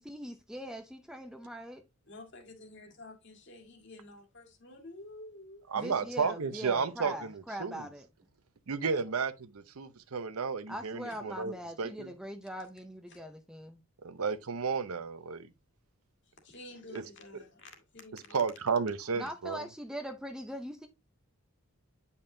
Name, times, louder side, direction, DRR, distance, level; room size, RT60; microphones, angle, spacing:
voice 1, 0.0-1.8 5.7-8.1 10.7-13.8 19.2-20.9, equal, 5° right, 0.5 m, -41 dB
voice 2, 2.0-5.6 11.1-11.2 12.6-12.7 13.1-13.2 16.3-18.5, left 2 dB, 50° left, 1.9 m, -50 dB
voice 3, 5.7-7.9 8.7-12.1 14.0-15.5 16.9-17.0 18.3-19.7, right 5 dB, 75° right, 0.7 m, -33 dB
8.8 x 5.5 x 2.7 m
head